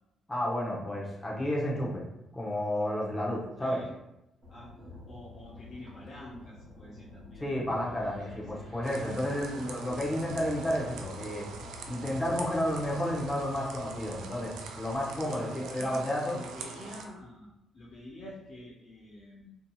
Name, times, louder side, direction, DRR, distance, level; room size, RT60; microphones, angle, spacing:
voice 1, 0.3-2.0 2.3-3.8 7.4-11.4 11.9-16.4, left 1 dB, 15° left, -4 dB, 0.8 m, -31 dB
voice 2, 3.6-4.0 4.5-4.7 5.1-7.5 8.2-8.7 9.4-10.0 15.2-19.5, left 1 dB, 55° left, -6 dB, 0.5 m, -47 dB
sound 1, 4.4-15.0, left 3 dB, 45° right, 0.9 m, -49 dB
sound 2, 8.8-17.0, right 5 dB, 85° right, 0.3 m, -44 dB
2.7 x 2.7 x 2.3 m, 0.90 s
cardioid pair, 90°, 0 cm